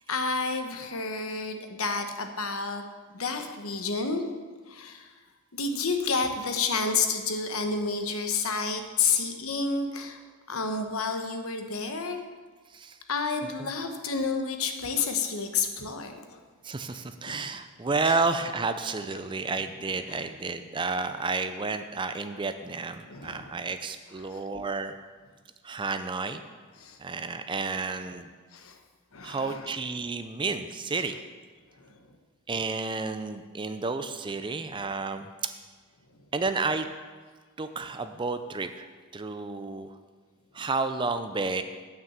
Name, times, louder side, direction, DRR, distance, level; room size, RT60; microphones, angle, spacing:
voice 1, 0.1-2.8 3.1-4.2 4.7-5.1 5.5-10.2 10.5-12.2 13.1-16.4 17.3-17.4 18.0-18.1 20.1-20.2 23.1-23.5 24.2-24.4 26.8-27.0 28.5-28.8 29.1-29.7 31.8-32.0, left 4 dB, 70° left, 6 dB, 1.1 m, -30 dB
voice 2, 16.6-24.9 25.6-26.4 27.0-28.3 29.2-31.2 32.5-35.5 36.3-36.9 37.6-40.0 40.5-41.6, right 4 dB, 20° right, 9 dB, 0.4 m, -31 dB
9.4 x 5.9 x 7.3 m, 1.4 s
head